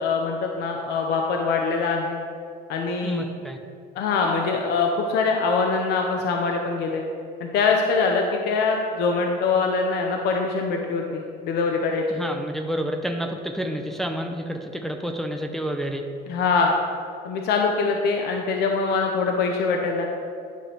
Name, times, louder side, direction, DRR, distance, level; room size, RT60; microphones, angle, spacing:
voice 1, 0.0-2.2 2.7-3.2 4.0-7.0 7.4-12.0 16.3-16.8 17.2-20.1, left 4 dB, 75° left, 1 dB, 0.7 m, -23 dB
voice 2, 3.0-3.6 12.1-16.0, equal, ahead, 3 dB, 0.6 m, -29 dB
10.0 x 5.7 x 3.4 m, 2.3 s
cardioid pair, 110°, 17 cm